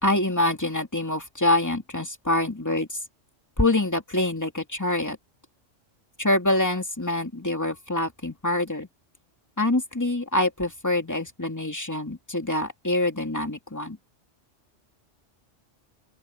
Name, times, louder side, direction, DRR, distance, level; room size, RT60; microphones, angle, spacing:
voice 1, 0.0-3.0 3.6-5.2 6.2-8.9 9.6-14.0, left 1 dB, 15° left, 2.6 m, -25 dB
open air
omnidirectional pair, 1.3 m